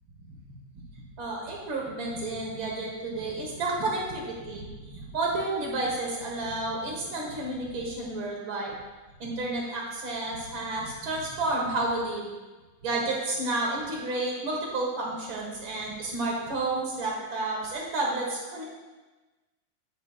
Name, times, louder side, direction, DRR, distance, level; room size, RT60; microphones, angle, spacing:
voice 1, 1.2-8.8 9.2-12.3 12.8-18.6, right 2 dB, 50° right, -2 dB, 1.7 m, -31 dB
9.5 x 8.3 x 2.4 m, 1.2 s
omnidirectional pair, 3.5 m